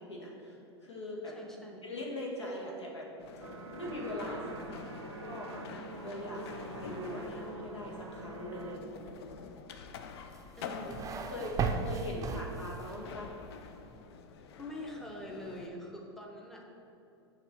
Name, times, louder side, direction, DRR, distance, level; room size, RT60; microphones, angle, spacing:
voice 1, 0.0-1.3 1.8-3.1 3.4-3.5 3.7-4.4 4.7-6.4 6.7-9.0 11.3-13.3, left 1 dB, 85° left, -3 dB, 1.3 m, -41 dB
voice 2, 1.3-1.9 10.6-11.1 14.6-16.7, left 1 dB, 5° left, -1 dB, 0.8 m, -44 dB
sound 1, 3.2-15.7, left 6 dB, 65° left, 0.5 m, -48 dB
sound 2, 3.4-8.8, right 2 dB, 85° right, 0.6 m, -45 dB
sound 3, 10.3-13.0, right 5 dB, 25° right, 0.5 m, -36 dB
6.8 x 2.9 x 5.8 m, 2.8 s
hypercardioid pair, 95°, 14 cm